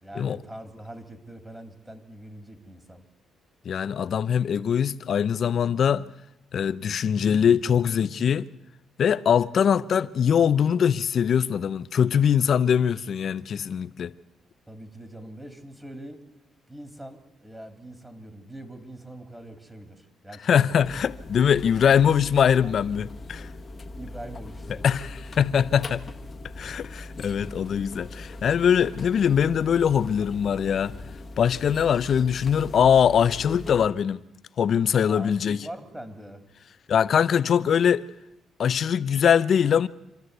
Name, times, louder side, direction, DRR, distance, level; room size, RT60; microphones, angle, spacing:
voice 1, 0.0-3.1 14.7-16.2 16.7-20.8 23.5-24.9 35.0-36.4, right 1 dB, 10° right, 2.9 m, -43 dB
voice 2, 3.6-6.1 6.5-8.5 9.0-14.1 20.4-23.5 24.8-26.0 26.6-30.9 31.4-34.2 34.6-35.6 36.9-38.0 38.6-39.9, left 8 dB, 55° left, 0.7 m, -22 dB
sound 1, 20.8-33.9, left 2 dB, 35° left, 1.3 m, -40 dB
26.5 x 13.5 x 8.1 m
cardioid pair, 90°, 0 cm